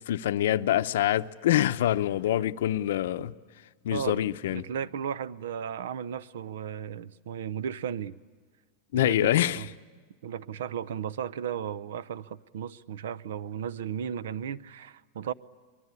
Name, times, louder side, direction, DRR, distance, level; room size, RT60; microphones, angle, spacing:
voice 1, 0.1-3.3 3.8-4.7 8.9-9.6, left 12 dB, 65° left, 0.7 m, -25 dB
voice 2, 3.9-8.2 8.9-9.7 10.2-15.3, right 8 dB, 80° right, 0.7 m, -35 dB
24.5 x 21.5 x 9.8 m
supercardioid pair, 180°, 0 cm